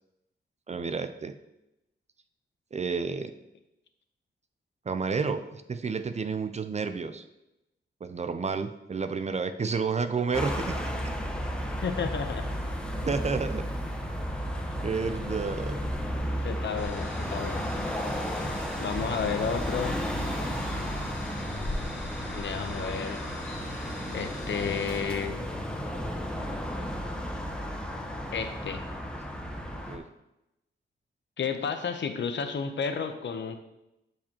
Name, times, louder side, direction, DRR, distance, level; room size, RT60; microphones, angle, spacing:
voice 1, 0.7-1.3 2.7-3.3 4.9-7.2 8.0-11.1 13.0-13.6 14.8-15.8 29.5-30.0, right 5 dB, 35° right, 9 dB, 0.5 m, -31 dB
sound 1, 10.3-30.0, equal, 5° left, 1.0 m, -33 dB
voice 2, 11.8-12.5 16.4-17.7 18.8-20.0 22.3-23.2 24.1-25.4 28.3-28.8 31.4-33.6, left 6 dB, 70° left, 8 dB, 0.8 m, -32 dB
sound 2, 16.8-25.1, equal, 90° left, 2.1 m, -43 dB
12.0 x 4.9 x 2.9 m, 0.90 s
wide cardioid pair, 95°, 19 cm